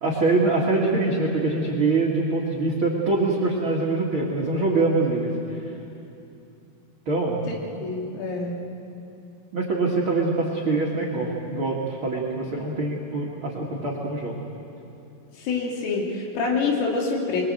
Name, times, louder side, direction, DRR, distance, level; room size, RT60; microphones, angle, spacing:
voice 1, 0.0-5.3 7.0-7.4 7.8-7.9 9.5-14.4, right 3 dB, 70° right, -1 dB, 1.2 m, -24 dB
voice 2, 7.8-8.6 15.3-17.4, left 4 dB, 90° left, -1 dB, 5.3 m, -26 dB
23.0 x 22.5 x 7.8 m, 2.7 s
omnidirectional pair, 5.8 m